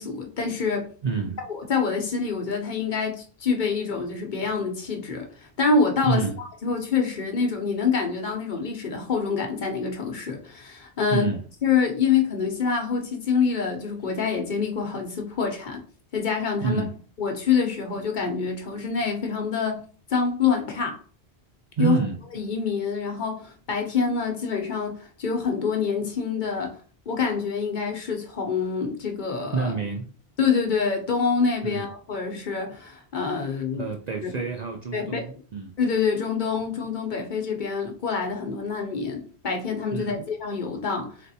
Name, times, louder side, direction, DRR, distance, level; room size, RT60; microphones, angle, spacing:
voice 1, 0.0-0.9 1.5-11.3 11.6-15.8 16.1-16.8 17.2-19.8 20.1-21.0 21.8-22.0 22.3-26.7 27.1-29.7 30.4-33.9 34.9-35.2 35.8-41.1, left 5 dB, 50° left, 0.8 m, -26 dB
voice 2, 1.0-1.4 6.0-6.4 11.1-11.4 16.6-16.9 21.8-22.2 29.5-30.1 31.6-31.9 33.4-33.5 33.7-35.7 39.9-40.3, right 5 dB, 55° right, 0.5 m, -28 dB
4.0 x 3.4 x 2.7 m
omnidirectional pair, 1.1 m